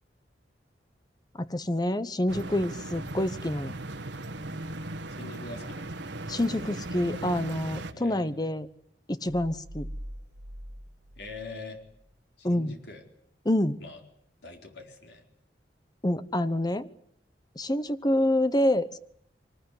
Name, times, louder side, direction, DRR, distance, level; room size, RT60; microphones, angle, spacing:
voice 1, 1.4-3.7 6.3-8.7 9.1-9.9 12.4-12.7 13.4-13.8 16.0-16.9 17.6-19.0, left 1 dB, 20° left, 14 dB, 1.0 m, -27 dB
sound 1, 2.3-7.9, right 2 dB, 80° right, 1.6 m, -37 dB
voice 2, 5.2-5.9 7.9-8.5 11.2-11.8 12.4-13.0 13.8-14.0 14.4-15.3, left 3 dB, 65° left, 3 dB, 4.6 m, -43 dB
sound 2, 9.3-12.1, equal, 65° right, 1.6 m, -43 dB
24.0 x 19.5 x 9.8 m, 0.70 s
head